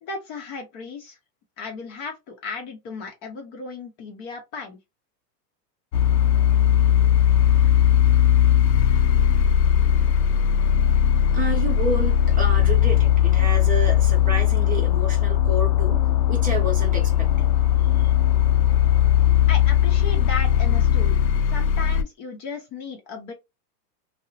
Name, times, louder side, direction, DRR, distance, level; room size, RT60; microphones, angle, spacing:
voice 1, 0.0-1.2 1.6-4.8 19.5-21.2 21.5-23.3, left 4 dB, 35° left, 0.7 m, -35 dB
sound 1, 5.9-22.0, left 10 dB, 90° left, 0.6 m, -19 dB
voice 2, 11.3-16.0 16.3-17.5 17.9-18.1, right 2 dB, 15° right, 0.7 m, -30 dB
2.6 x 2.0 x 2.6 m
hypercardioid pair, 125°, 49 cm